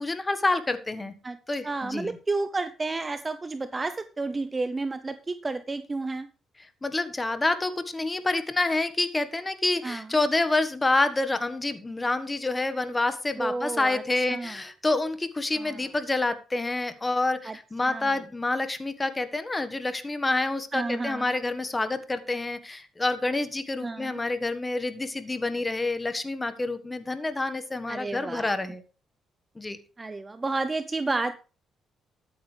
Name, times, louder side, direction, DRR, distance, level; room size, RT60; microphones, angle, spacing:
voice 1, 0.0-1.1 1.5-2.2 6.6-28.8 29.5-29.8, left 2 dB, 20° left, 10 dB, 1.5 m, -28 dB
voice 2, 1.6-6.3 9.8-10.0 13.4-14.0 14.3-14.6 15.5-15.8 17.4-17.6 17.9-18.2 20.7-21.3 23.8-24.2 27.9-28.5 30.0-31.4, right 3 dB, 25° right, 11 dB, 0.7 m, -31 dB
13.0 x 8.9 x 3.4 m, 0.35 s
cardioid pair, 90°, 0 cm